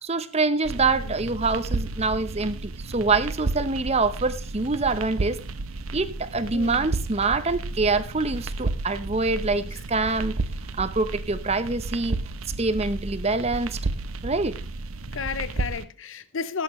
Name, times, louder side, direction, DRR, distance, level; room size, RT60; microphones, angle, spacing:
voice 1, 0.0-5.4 5.9-10.3 10.8-12.2 12.6-13.8 14.2-14.6, right 3 dB, 30° right, 0.8 m, -25 dB
sound 1, 0.6-15.8, right 2 dB, 80° right, 0.9 m, -32 dB
voice 2, 0.7-1.1 6.5-6.9 9.6-9.8 15.1-16.6, left 5 dB, 65° left, 0.7 m, -33 dB
17.5 x 8.5 x 3.1 m
head